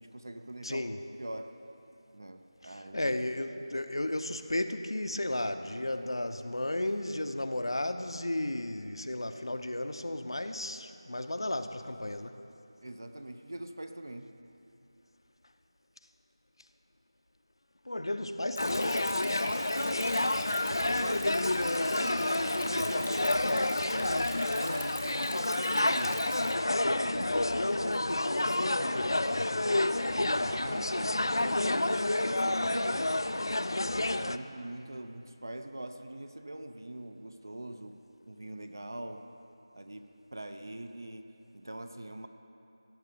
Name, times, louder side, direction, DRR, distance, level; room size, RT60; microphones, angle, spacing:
voice 1, 0.0-0.9 1.2-1.5 2.1-3.1 12.8-14.3 19.4-20.3 20.7-21.5 21.8-26.3 26.8-29.6 30.1-33.7 34.2-38.0 38.3-39.2 39.7-41.3 41.5-42.3, right 1 dB, 40° right, 7 dB, 0.6 m, -43 dB
voice 2, 0.6-1.0 2.6-12.4 17.8-19.2, left 1 dB, 70° left, 8 dB, 0.7 m, -34 dB
Stream, 18.5-26.5, left 1 dB, 15° left, 0.6 m, -42 dB
sound 1, 18.6-34.4, left 2 dB, 55° left, 0.4 m, -29 dB
sound 2, 28.3-29.7, right 1 dB, 65° right, 1.0 m, -52 dB
16.5 x 6.6 x 6.8 m, 2.7 s
figure-of-eight pair, 180°, 3 cm